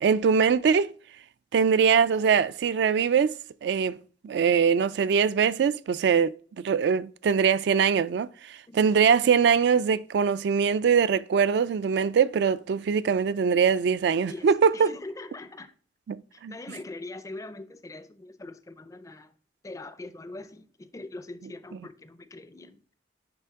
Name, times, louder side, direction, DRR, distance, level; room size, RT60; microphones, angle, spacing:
voice 1, 0.0-0.9 1.5-3.4 3.6-4.0 4.2-8.3 8.7-14.9 16.1-16.5, right 6 dB, 65° right, 0.3 m, -22 dB
voice 2, 14.7-15.7 16.3-19.3 19.6-22.8, left 2 dB, 20° left, 0.4 m, -42 dB
10.0 x 3.4 x 3.6 m
head